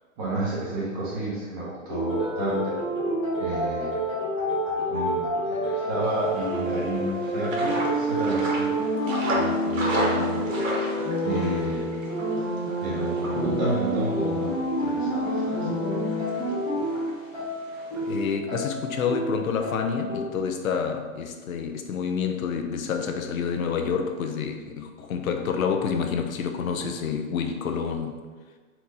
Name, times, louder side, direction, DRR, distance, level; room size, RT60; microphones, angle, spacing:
voice 1, 0.2-2.8 3.4-4.1 4.9-8.8 9.2-10.5 11.2-11.9 12.8-15.7, right 1 dB, 30° right, -6 dB, 1.0 m, -31 dB
sound 1, 1.9-20.2, equal, 5° left, 0.4 m, -28 dB
sound 2, 6.0-18.3, right 1 dB, 70° right, 1.4 m, -35 dB
voice 2, 18.0-28.2, left 6 dB, 80° left, 5 dB, 0.7 m, -28 dB
4.5 x 2.5 x 4.0 m, 1.5 s
hypercardioid pair, 155°, 41 cm